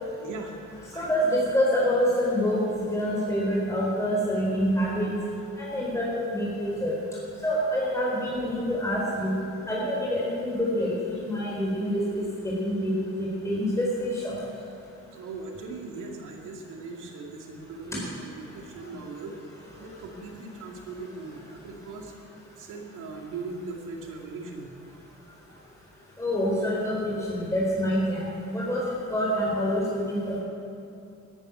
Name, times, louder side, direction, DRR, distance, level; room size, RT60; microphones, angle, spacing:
voice 1, 0.1-0.6 0.9-1.1 14.3-14.4 15.1-19.4 19.8-22.1 22.6-25.0 25.5-25.6, right 3 dB, 90° right, 1 dB, 2.3 m, -39 dB
voice 2, 0.9-5.1 5.6-6.9 7.4-9.4 9.7-14.4 26.2-30.4, equal, 10° left, -5 dB, 4.3 m, -26 dB
13.0 x 10.5 x 9.2 m, 2.6 s
cardioid pair, 90°, 30 cm